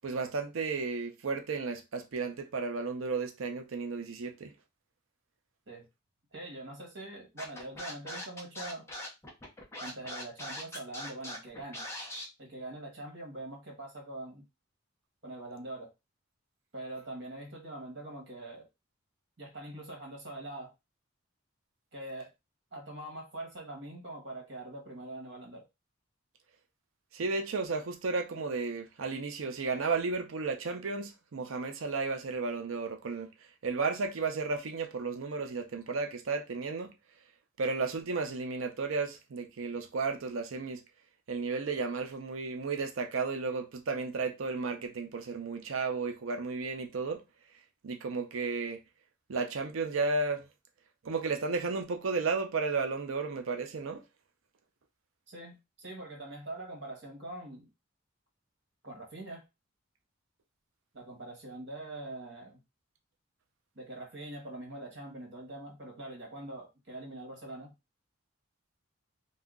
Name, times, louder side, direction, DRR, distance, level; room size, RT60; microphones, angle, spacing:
voice 1, 0.0-4.5 27.1-33.3 33.6-36.9 37.6-40.8 41.3-47.2 47.8-48.8 49.3-50.5 51.0-54.0, right 4 dB, 80° right, 0.5 m, -33 dB
voice 2, 6.3-8.9 9.8-11.9 12.4-14.4 15.2-15.9 16.7-18.7 19.4-20.7 21.9-22.3 22.7-25.6 55.3-57.7 58.8-59.4 60.9-62.6 63.7-67.7, right 2 dB, 60° right, 1.3 m, -43 dB
Scratching (performance technique), 7.4-12.3, left 1 dB, 15° left, 0.7 m, -41 dB
2.7 x 2.3 x 3.6 m
head